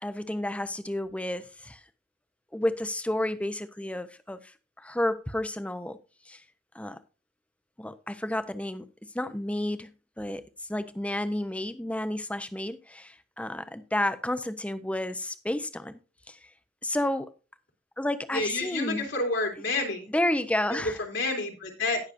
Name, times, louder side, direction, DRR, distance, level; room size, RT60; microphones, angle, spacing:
voice 1, 0.0-1.8 2.5-4.5 4.8-6.0 6.3-6.4 6.7-7.0 7.8-8.8 9.1-9.9 10.2-16.0 16.3-16.5 16.8-17.3 18.0-19.1 20.1-21.0, left 1 dB, 5° left, 0.6 m, -31 dB
voice 2, 18.3-20.1 20.7-22.0, left 2 dB, 75° left, 3.0 m, -29 dB
18.0 x 6.5 x 2.6 m
head